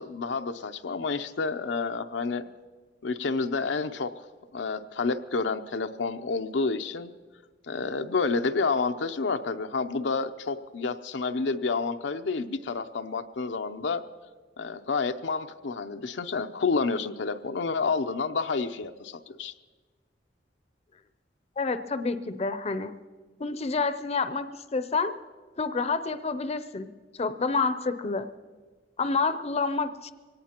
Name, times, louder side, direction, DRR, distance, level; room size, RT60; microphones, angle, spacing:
voice 1, 0.0-2.5 3.0-4.1 4.5-7.1 7.7-14.0 14.6-19.5, left 4 dB, 90° left, 7 dB, 0.6 m, -29 dB
voice 2, 21.6-22.9 23.4-25.1 25.6-26.9 27.2-28.3 29.0-30.1, left 4 dB, 35° left, 11 dB, 0.5 m, -28 dB
23.5 x 18.0 x 2.9 m, 1.4 s
head